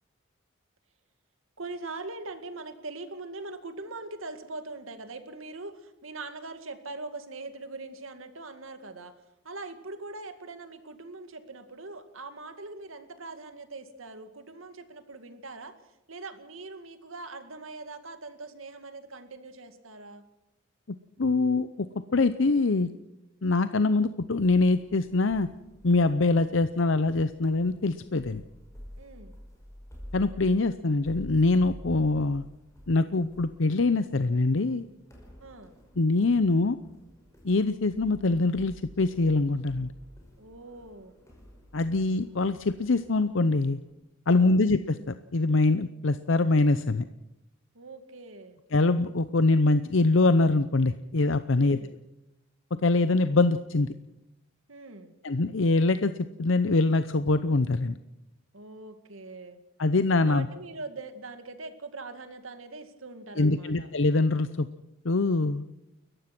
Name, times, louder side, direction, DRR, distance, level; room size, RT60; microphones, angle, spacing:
voice 1, 1.6-9.2 9.4-15.8 16.1-20.2 29.0-29.4 35.4-35.8 40.4-41.1 44.3-44.6 47.7-48.6 51.6-51.9 54.7-55.1 58.5-59.6 60.2-63.9, right 3 dB, 85° right, 9 dB, 2.1 m, -42 dB
voice 2, 21.2-21.9 22.1-22.9 23.4-25.5 25.8-28.4 30.1-32.4 32.9-34.8 36.0-36.8 37.4-39.9 41.7-43.8 44.3-47.0 48.7-51.8 52.8-53.9 55.2-56.1 56.4-57.9 59.8-60.5 63.4-64.7 65.0-65.7, left 3 dB, 65° left, 12 dB, 0.7 m, -24 dB
sound 1, 24.4-43.9, equal, 15° left, 5.3 m, -50 dB
30.0 x 14.5 x 6.0 m, 0.90 s
head